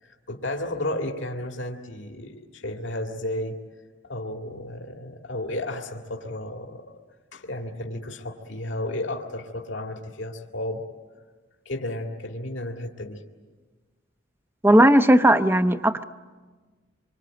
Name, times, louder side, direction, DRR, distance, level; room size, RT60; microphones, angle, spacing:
voice 1, 0.0-3.6 4.0-6.8 7.3-10.8 11.7-13.2, left 1 dB, 75° left, 2 dB, 2.2 m, -33 dB
voice 2, 14.6-16.0, right 1 dB, 10° right, 10 dB, 0.8 m, -17 dB
26.5 x 25.0 x 9.0 m, 1.4 s
head